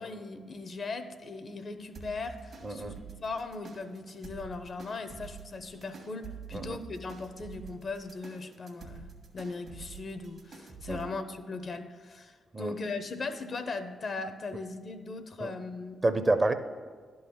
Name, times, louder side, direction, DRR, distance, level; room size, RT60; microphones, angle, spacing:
voice 1, 0.0-16.0, left 3 dB, 55° left, 9 dB, 0.7 m, -39 dB
sound 1, 1.9-11.1, right 6 dB, 65° right, 1.4 m, -48 dB
voice 2, 2.6-2.9 6.5-6.8 10.9-11.0 12.5-12.7 15.4-15.5 16.0-16.5, right 2 dB, 30° right, 10 dB, 0.7 m, -28 dB
11.0 x 3.9 x 7.0 m, 1.5 s
supercardioid pair, 50°, 0 cm